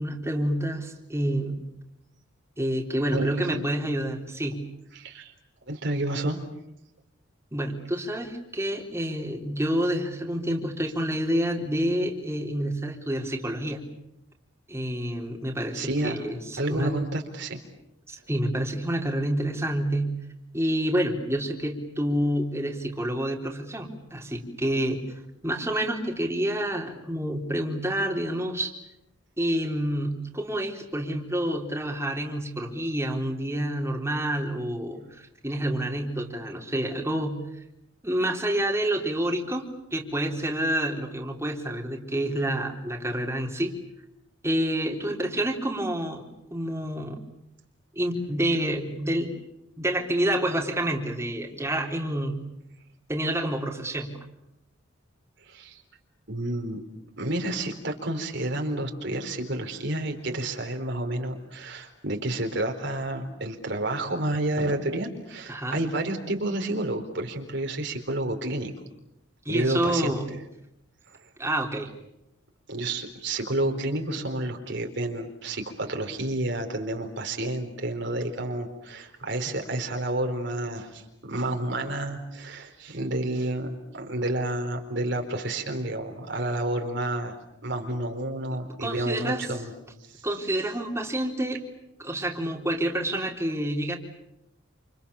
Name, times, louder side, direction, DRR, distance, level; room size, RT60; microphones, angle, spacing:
voice 1, 0.0-1.7 2.6-4.6 7.5-13.8 14.7-17.0 18.1-20.2 20.5-25.0 25.4-28.7 29.4-37.4 38.0-43.7 44.4-47.2 48.0-49.3 49.8-52.5 53.1-54.1 65.5-65.8 69.5-70.2 71.4-71.9 88.8-89.5 90.2-91.6 92.0-94.0, right 1 dB, 15° right, 1 dB, 3.8 m, -28 dB
voice 2, 3.1-3.8 4.9-5.3 5.7-6.4 15.7-16.2 16.6-17.6 55.4-55.8 56.3-56.8 57.2-68.7 69.5-70.2 72.7-87.4 87.6-89.7 90.1-90.3, right 1 dB, 65° right, 4 dB, 4.2 m, -30 dB
29.0 x 28.5 x 7.2 m, 0.85 s
head